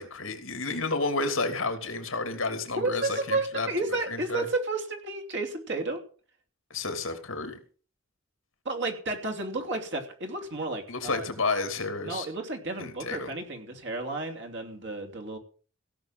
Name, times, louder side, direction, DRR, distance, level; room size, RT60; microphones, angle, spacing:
voice 1, 0.0-3.7 4.1-4.5 6.7-7.6 10.9-12.3 12.8-13.3, left 3 dB, 65° left, 7 dB, 2.9 m, -31 dB
voice 2, 2.8-6.0 8.6-11.2 12.0-15.4, right 2 dB, 55° right, 4 dB, 3.0 m, -32 dB
17.0 x 6.4 x 7.5 m, 0.41 s
head